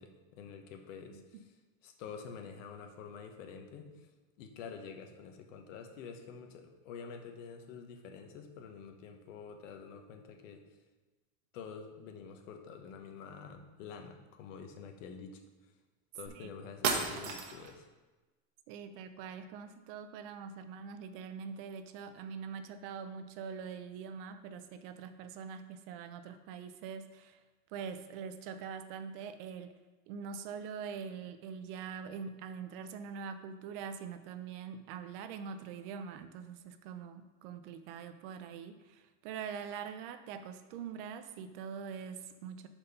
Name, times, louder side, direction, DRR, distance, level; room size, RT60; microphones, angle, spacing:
voice 1, 0.0-1.4 1.8-4.1 4.4-10.6 11.5-15.4 16.1-17.8, left 6 dB, 75° left, 5 dB, 1.1 m, -48 dB
sound 1, 16.3-16.4 16.8-17.8, right 5 dB, 75° right, 1.1 m, -33 dB
voice 2, 18.7-27.4 27.7-29.8 30.1-42.7, right 6 dB, 45° right, 10 dB, 0.5 m, -43 dB
5.1 x 4.4 x 5.5 m, 1.2 s
supercardioid pair, 160°, 38 cm